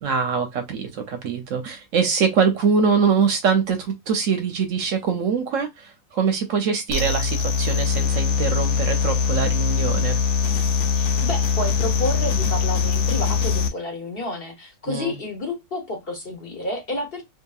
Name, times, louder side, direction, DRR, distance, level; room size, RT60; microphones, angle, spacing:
voice 1, 0.0-10.2 14.9-15.2, right 5 dB, 70° right, 0.8 m, -23 dB
sound 1, 6.9-13.7, left 6 dB, 80° left, 1.2 m, -22 dB
voice 2, 11.0-17.2, left 1 dB, 45° left, 0.9 m, -30 dB
2.7 x 2.6 x 2.3 m
omnidirectional pair, 1.6 m